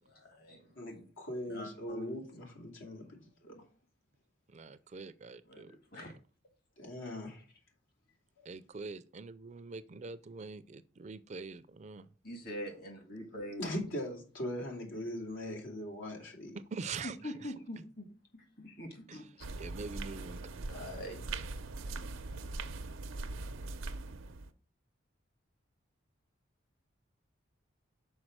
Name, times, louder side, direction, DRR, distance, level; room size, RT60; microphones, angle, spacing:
voice 1, 0.1-0.6 1.5-2.2 3.5-3.6 5.5-6.1 12.2-13.7 17.2-18.1 18.3-19.3 20.7-21.2, equal, 50° left, 1.8 m, -44 dB
voice 2, 0.8-3.5 6.8-7.4 13.6-16.6, left 1 dB, 85° left, 2.6 m, -40 dB
voice 3, 4.5-5.7 8.4-12.1 16.5-17.5 19.1-19.3 19.6-20.4, right 4 dB, 35° right, 0.4 m, -44 dB
sound 1, 19.4-24.5, right 3 dB, 90° right, 0.6 m, -41 dB
6.3 x 4.6 x 6.1 m
head